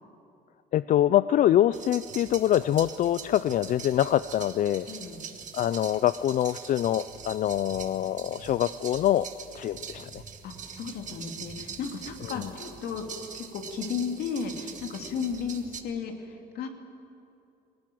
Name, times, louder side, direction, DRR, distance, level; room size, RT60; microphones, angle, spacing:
voice 1, 0.7-4.9 5.5-9.3 9.5-10.2 12.3-12.5, left 12 dB, 50° left, 15 dB, 0.4 m, -25 dB
sound 1, 1.7-15.8, right 6 dB, 45° right, 1.8 m, -43 dB
voice 2, 4.9-5.2 10.4-13.0 13.3-16.7, left 6 dB, 70° left, 4 dB, 2.6 m, -34 dB
19.0 x 18.5 x 9.2 m, 2.7 s
cardioid pair, 110°, 17 cm